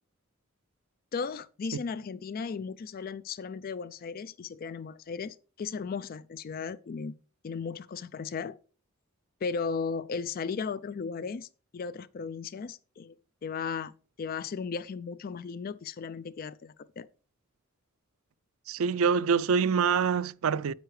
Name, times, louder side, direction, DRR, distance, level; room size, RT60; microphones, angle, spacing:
voice 1, 1.1-7.1 7.4-8.6 9.4-13.2 13.4-13.9 14.2-17.1, left 5 dB, 45° left, 0.4 m, -36 dB
voice 2, 18.7-20.7, right 6 dB, 80° right, 0.4 m, -25 dB
9.2 x 8.9 x 3.2 m
head